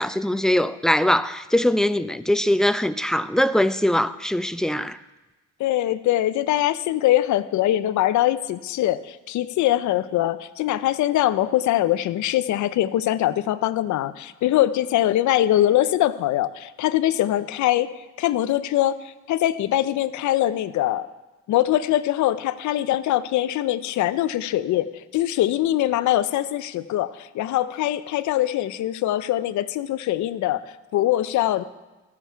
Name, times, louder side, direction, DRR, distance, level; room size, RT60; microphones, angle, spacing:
voice 1, 0.0-5.0, left 1 dB, ahead, 13 dB, 0.3 m, -21 dB
voice 2, 5.6-21.1 21.5-31.6, left 13 dB, 75° left, 15 dB, 0.5 m, -22 dB
14.5 x 5.9 x 4.6 m, 1.1 s
cardioid pair, 90°, 30 cm